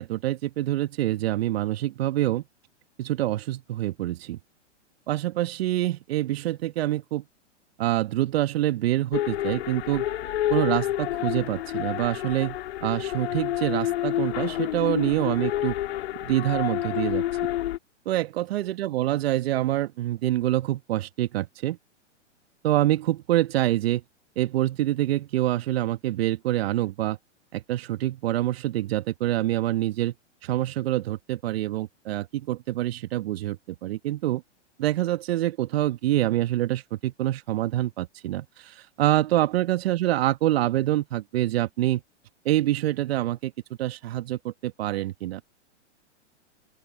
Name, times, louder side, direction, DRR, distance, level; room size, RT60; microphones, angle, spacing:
voice 1, 0.0-2.4 3.0-4.4 5.1-7.2 7.8-10.1 10.5-15.7 16.2-17.2 18.1-21.8 22.6-24.0 24.4-27.2 27.5-30.1 30.4-34.4 34.8-42.0 42.5-43.5 43.8-45.4, right 14 dB, 55° right, 1.8 m, -26 dB
sound 1, 9.1-17.8, left 14 dB, 60° left, 2.8 m, -29 dB
open air
hypercardioid pair, 115°, 36 cm